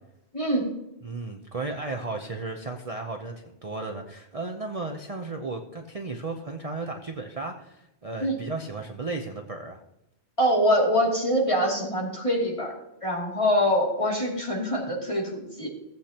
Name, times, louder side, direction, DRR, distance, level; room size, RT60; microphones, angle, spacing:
voice 1, 0.3-0.7 8.2-8.4 10.4-12.7 13.0-15.7, equal, 25° left, -3 dB, 2.8 m, -24 dB
voice 2, 1.0-9.8, right 3 dB, 35° right, 3 dB, 0.8 m, -34 dB
17.0 x 8.3 x 2.9 m, 0.86 s
omnidirectional pair, 1.2 m